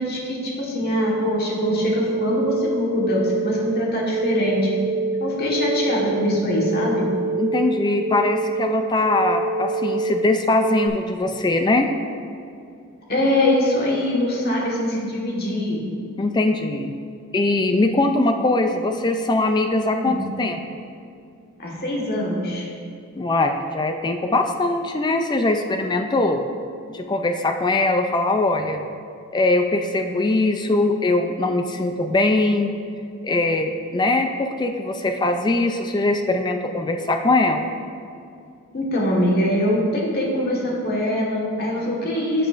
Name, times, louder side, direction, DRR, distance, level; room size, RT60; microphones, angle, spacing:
voice 1, 0.0-4.7 5.2-7.1 13.1-15.8 19.9-20.3 21.6-22.7 38.7-42.5, left 1 dB, 45° left, -3 dB, 1.4 m, -23 dB
sound 1, 0.9-10.9, right 3 dB, 90° left, 0.9 m, -26 dB
voice 2, 7.3-11.9 16.2-16.9 17.3-20.6 23.2-26.5 26.9-28.9 29.3-32.7 33.2-37.7, left 2 dB, 20° left, 6 dB, 0.3 m, -21 dB
10.5 x 6.8 x 2.5 m, 2.4 s
head